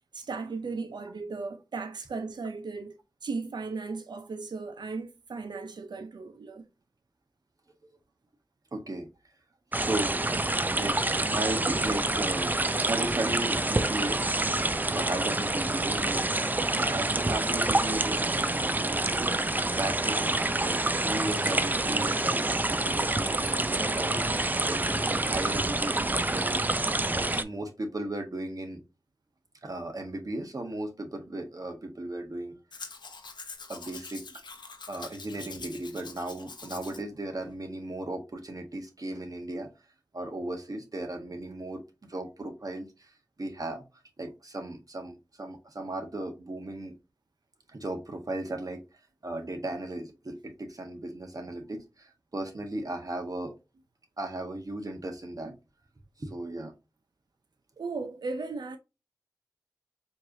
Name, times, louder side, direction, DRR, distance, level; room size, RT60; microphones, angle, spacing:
voice 1, 0.1-6.6 57.8-58.8, right 4 dB, 80° right, 0.5 m, -36 dB
voice 2, 8.7-9.1 9.8-10.2 10.7-14.2 14.9-19.3 19.7-28.8 29.6-32.6 33.7-34.2 34.9-39.7 40.1-41.8 42.1-43.1 43.4-43.8 44.2-46.9 47.7-48.8 49.2-53.5 54.2-55.5 56.2-56.7, right 2 dB, 55° right, 1.3 m, -36 dB
sound 1, 9.7-27.4, right 2 dB, 25° right, 0.4 m, -27 dB
Domestic sounds home sounds, 32.7-37.0 37.4-37.5, left 4 dB, 85° left, 0.8 m, -44 dB
4.5 x 3.1 x 2.6 m
wide cardioid pair, 50°, 7 cm